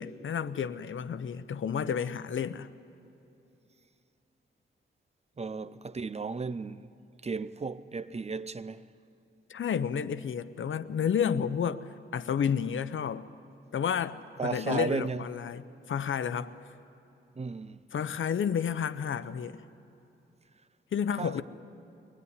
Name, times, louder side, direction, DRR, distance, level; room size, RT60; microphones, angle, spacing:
voice 1, 0.0-2.7 9.5-11.8 12.1-13.2 13.7-16.5 17.9-19.6 20.9-21.4, left 7 dB, 75° left, 0.8 m, -31 dB
voice 2, 5.4-6.9 7.2-8.8 14.4-15.3 17.4-17.8 21.2-21.4, right 4 dB, 30° right, 0.6 m, -34 dB
24.0 x 20.0 x 9.8 m
wide cardioid pair, 105°, 21 cm